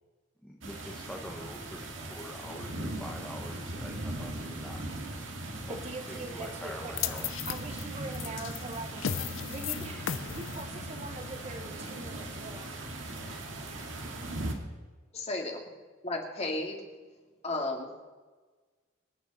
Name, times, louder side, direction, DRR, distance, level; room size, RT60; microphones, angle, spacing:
voice 1, 0.4-4.8 5.6-5.8 6.1-7.3, left 1 dB, 5° left, -2 dB, 1.3 m, -45 dB
sound 1, 0.6-14.5, right 2 dB, 75° right, 2.1 m, -39 dB
voice 2, 5.7-12.7, right 2 dB, 30° right, 5 dB, 1.2 m, -43 dB
sound 2, 7.0-13.2, left 8 dB, 85° left, 0.7 m, -38 dB
voice 3, 15.1-15.6 16.0-16.8 17.4-18.1, left 2 dB, 35° left, 1 dB, 2.4 m, -33 dB
25.5 x 9.7 x 4.3 m, 1.3 s
head